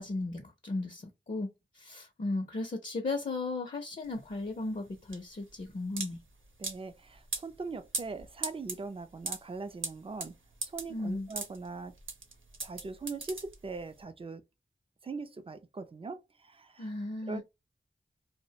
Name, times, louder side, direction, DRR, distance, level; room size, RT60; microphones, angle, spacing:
voice 1, 0.0-6.2 10.9-11.3 16.8-17.4, left 2 dB, 40° left, 0.5 m, -36 dB
sound 1, 4.0-14.0, right 3 dB, 85° right, 0.8 m, -40 dB
voice 2, 6.6-10.4 10.7-12.0 12.6-14.4 15.0-16.9 17.2-17.4, right 4 dB, 30° right, 0.4 m, -41 dB
2.4 x 2.0 x 2.7 m
wide cardioid pair, 70°, 20 cm